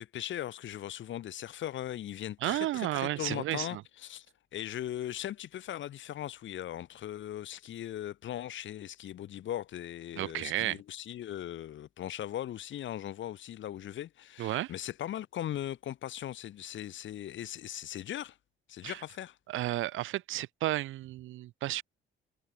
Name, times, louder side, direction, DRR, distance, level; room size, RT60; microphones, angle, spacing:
voice 1, 0.0-4.3 4.5-18.4 18.7-19.4, left 11 dB, 70° left, 2.5 m, -39 dB
voice 2, 2.4-3.8 10.2-10.8 14.4-14.7 18.8-19.0 19.5-21.8, right 15 dB, 80° right, 1.0 m, -32 dB
cardioid pair, 90°, 20 cm